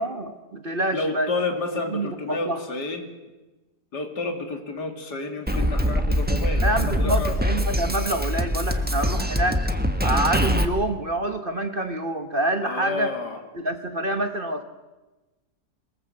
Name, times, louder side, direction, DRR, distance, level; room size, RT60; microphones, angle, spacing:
voice 1, 0.0-1.3 1.9-2.6 6.6-9.6 10.0-13.1 13.5-14.6, right 1 dB, 35° right, 8 dB, 1.3 m, -27 dB
voice 2, 0.9-3.1 3.9-7.4 12.6-13.4, left 3 dB, 75° left, 5 dB, 3.1 m, -30 dB
Drum kit, 5.5-10.6, equal, 5° right, 1.2 m, -23 dB
22.5 x 20.5 x 7.7 m, 1.1 s
omnidirectional pair, 1.8 m